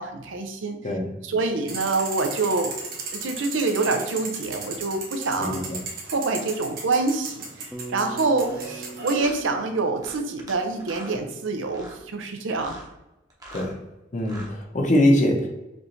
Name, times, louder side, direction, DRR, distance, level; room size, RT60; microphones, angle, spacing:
voice 1, 0.0-0.8 1.2-2.7 3.1-5.7 6.1-12.8, right 3 dB, 75° right, 6 dB, 0.6 m, -26 dB
sound 1, 1.7-9.2, right 4 dB, 50° right, 1.1 m, -36 dB
voice 2, 5.4-5.8 13.5-13.8 14.1-15.5, left 1 dB, 40° left, 1 dB, 0.8 m, -22 dB
Bass guitar, 7.7-12.1, right 2 dB, 5° left, 0.6 m, -42 dB
sound 2, 8.4-8.6 9.2-9.4 10.0-10.5 10.8-11.2 11.7-12.0 12.5-12.9 13.3-13.7 14.2-14.5, right 1 dB, 20° right, 0.9 m, -43 dB
5.0 x 2.7 x 3.2 m, 0.96 s
head